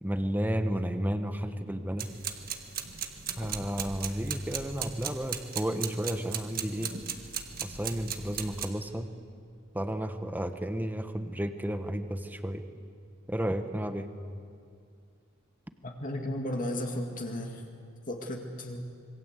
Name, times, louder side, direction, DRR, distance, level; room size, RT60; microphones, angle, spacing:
voice 1, 0.0-2.1 3.4-6.9 7.6-9.1 9.7-12.6 13.3-14.1, equal, 10° right, 8 dB, 1.1 m, -32 dB
sound 1, 2.0-8.7, right 8 dB, 45° right, 1.7 m, -37 dB
voice 2, 15.8-17.6 18.1-18.8, left 1 dB, 40° left, 2 dB, 2.1 m, -34 dB
26.5 x 22.5 x 8.2 m, 2.3 s
head